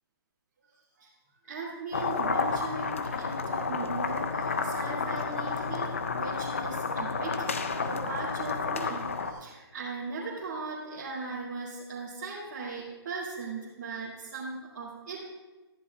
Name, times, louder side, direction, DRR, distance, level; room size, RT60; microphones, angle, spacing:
voice 1, 1.4-15.3, right 3 dB, 30° right, -11 dB, 2.2 m, -38 dB
sound 1, 1.9-9.3, left 4 dB, 30° left, 0.5 m, -31 dB
14.0 x 10.5 x 2.3 m, 1.1 s
hypercardioid pair, 180°, 14 cm